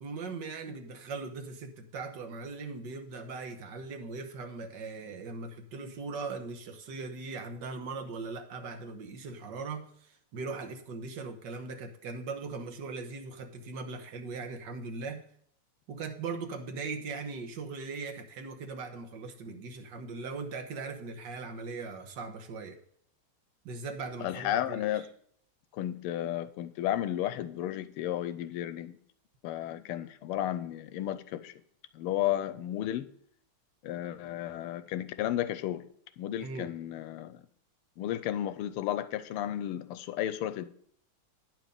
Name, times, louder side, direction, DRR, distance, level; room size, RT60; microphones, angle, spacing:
voice 1, 0.0-15.2 15.9-22.8 23.7-25.0 36.4-36.7, right 4 dB, 60° right, 4 dB, 1.6 m, -39 dB
voice 2, 24.2-25.0 25.7-29.0 29.4-31.5 31.9-33.1 33.8-35.8 36.2-37.4 38.0-40.6, left 12 dB, 90° left, 13 dB, 1.5 m, -33 dB
9.5 x 6.1 x 5.2 m, 0.64 s
omnidirectional pair, 2.4 m